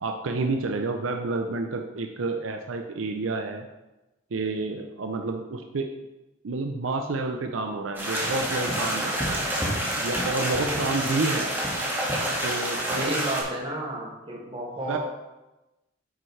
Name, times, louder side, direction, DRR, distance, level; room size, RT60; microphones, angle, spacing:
voice 1, 0.0-3.7 4.3-5.9 6.4-9.4 10.0-11.6 12.4-13.2 14.9-15.0, right 3 dB, 80° right, 5 dB, 0.6 m, -29 dB
sound 1, 7.9-13.4, right 1 dB, 10° right, 1.7 m, -28 dB
voice 2, 10.4-11.0 12.9-15.0, right 1 dB, 30° right, -4 dB, 2.0 m, -33 dB
8.9 x 6.4 x 3.2 m, 1.0 s
head